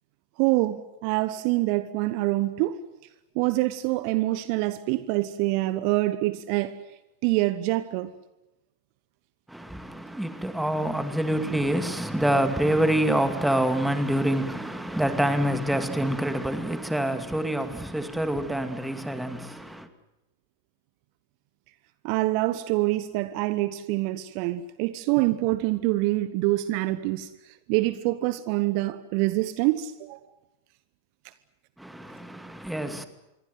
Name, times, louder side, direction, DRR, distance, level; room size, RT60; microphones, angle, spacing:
voice 1, 0.4-2.8 3.3-6.8 7.2-8.1 22.0-27.3 27.7-30.2, right 18 dB, 45° right, 1.1 m, -25 dB
voice 2, 9.5-19.9 31.8-33.0, right 1 dB, 5° right, 2.4 m, -26 dB
26.5 x 23.5 x 7.9 m
figure-of-eight pair, 90°, 0 cm